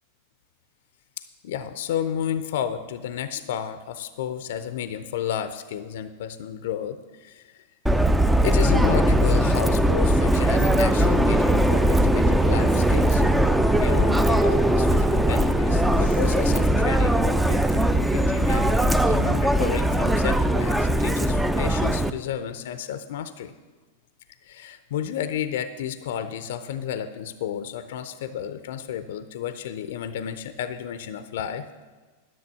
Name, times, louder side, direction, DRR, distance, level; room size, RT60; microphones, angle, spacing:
voice 1, 1.4-7.6 8.4-13.2 13.7-18.7 19.0-23.5 24.4-31.7, left 9 dB, 65° left, 12 dB, 0.5 m, -32 dB
Subway metro underground, 7.9-22.1, right 1 dB, 5° right, 0.5 m, -20 dB
10.5 x 6.7 x 6.8 m, 1.3 s
hypercardioid pair, 100°, 0 cm